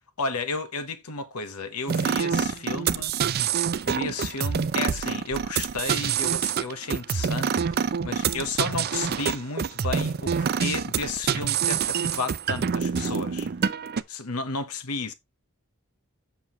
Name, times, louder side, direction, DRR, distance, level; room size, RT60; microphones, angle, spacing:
voice 1, 0.2-3.1 3.8-13.5 14.1-15.1, left 3 dB, 85° left, 1.1 m, -33 dB
sound 1, 1.9-14.0, right 7 dB, 45° right, 0.5 m, -26 dB
7.6 x 6.0 x 3.0 m
head